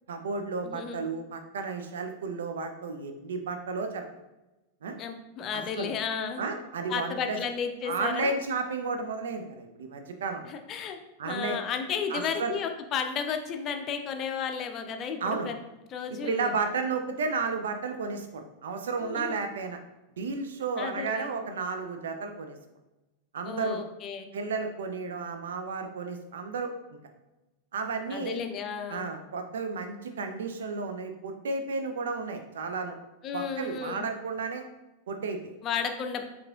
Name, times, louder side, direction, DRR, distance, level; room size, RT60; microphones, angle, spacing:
voice 1, 0.1-4.2 4.8-4.9 5.5-5.9 6.4-7.4 7.8-10.5 11.2-11.6 12.1-12.5 15.2-15.5 16.2-19.8 20.2-22.6 23.3-23.8 24.3-27.0 27.7-28.4 28.9-33.0 33.3-34.6 35.1-35.6, right 4 dB, 65° right, 6 dB, 0.4 m, -33 dB
voice 2, 0.6-1.0 5.0-6.4 6.9-8.4 10.4-11.0 11.2-15.6 15.9-16.5 19.0-19.4 20.8-21.3 23.5-24.3 28.1-29.1 33.2-34.1 35.6-36.2, left 6 dB, 30° left, 6 dB, 0.5 m, -33 dB
4.6 x 3.8 x 2.3 m, 1.0 s
figure-of-eight pair, 90°, 0 cm